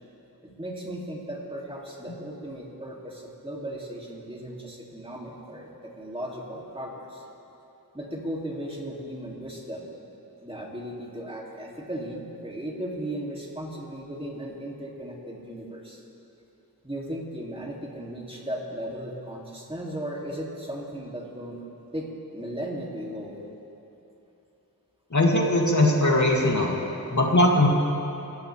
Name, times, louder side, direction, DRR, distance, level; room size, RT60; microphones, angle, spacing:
voice 1, 0.4-7.2 7.9-9.9 10.4-16.0 16.8-21.6 21.9-23.5, right 1 dB, 15° right, -3 dB, 2.8 m, -36 dB
voice 2, 25.1-26.7 27.1-27.7, left 1 dB, 50° left, -1 dB, 2.6 m, -20 dB
27.5 x 14.5 x 3.5 m, 3.0 s
wide cardioid pair, 65°, 37 cm